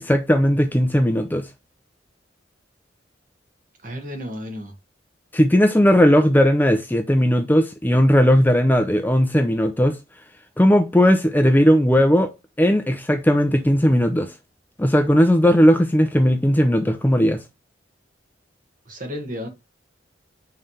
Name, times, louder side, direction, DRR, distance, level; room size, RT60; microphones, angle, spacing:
voice 1, 0.0-1.5 5.3-10.0 10.6-12.3 12.6-14.3 14.8-17.4, equal, 10° left, 0.6 m, -17 dB
voice 2, 3.8-4.7 18.9-19.5, equal, 45° right, 1.7 m, -32 dB
5.5 x 3.3 x 5.6 m
head